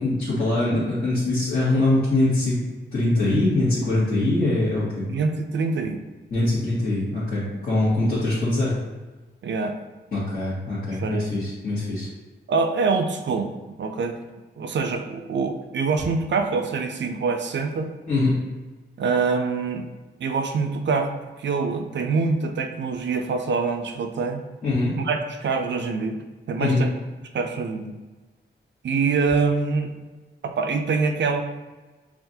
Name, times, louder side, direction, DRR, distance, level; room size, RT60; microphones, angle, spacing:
voice 1, 0.0-2.6 2.9-5.1 6.3-8.7 10.1-12.1 18.1-18.4 24.6-24.9 26.6-26.8, left 2 dB, 45° left, -11 dB, 1.4 m, -23 dB
voice 2, 5.1-6.0 9.4-9.8 10.9-11.3 12.5-14.2 14.6-17.9 19.0-19.9 20.2-21.1 21.4-24.4 25.0-26.2 26.5-26.9 27.3-28.0 28.8-29.9 30.4-31.4, right 4 dB, 65° right, 5 dB, 0.4 m, -25 dB
5.7 x 2.4 x 2.7 m, 1.2 s
wide cardioid pair, 130°, 20 cm